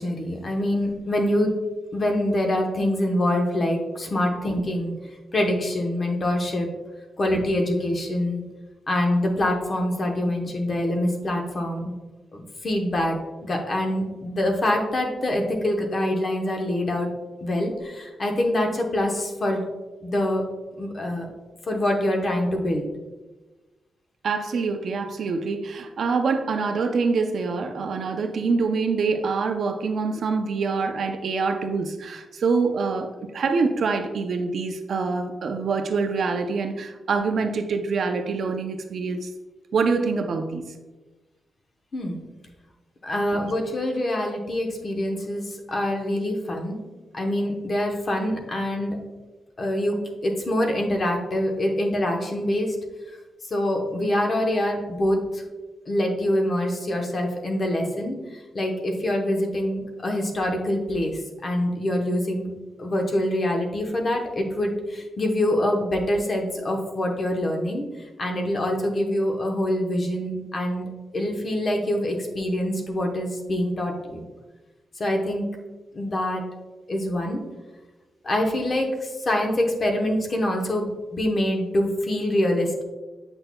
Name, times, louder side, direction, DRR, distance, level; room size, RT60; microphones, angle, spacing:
voice 1, 0.0-1.5 1.9-5.0 5.3-6.7 7.2-8.4 8.9-11.9 12.3-17.1 17.4-19.6 20.0-20.4 20.8-21.3 21.7-22.8 41.9-42.2 43.0-46.8 47.1-49.0 49.6-52.8 53.5-55.4 55.9-62.5 62.8-67.9 68.2-74.2 75.0-75.5 75.9-76.4 76.9-77.4 78.2-82.8, left 1 dB, 35° left, 2 dB, 0.9 m, -25 dB
voice 2, 24.2-39.3 39.7-40.6, right 4 dB, 60° right, 6 dB, 0.5 m, -25 dB
7.6 x 6.1 x 2.2 m, 1.2 s
wide cardioid pair, 160°, 0 cm